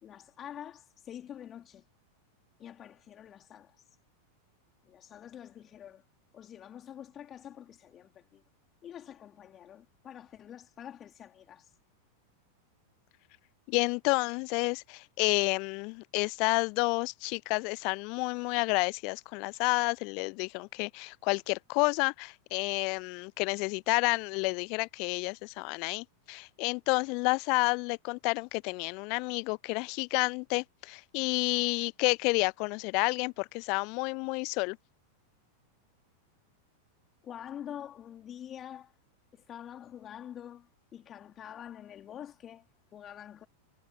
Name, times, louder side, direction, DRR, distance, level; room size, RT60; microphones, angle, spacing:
voice 1, 0.0-1.9 2.6-4.0 4.8-6.0 6.3-8.4 8.8-11.8 37.2-38.9 39.3-43.5, left 10 dB, 25° left, 3.8 m, -46 dB
voice 2, 13.7-34.8, left 31 dB, 45° left, 0.4 m, -30 dB
figure-of-eight pair, 90°, 0 cm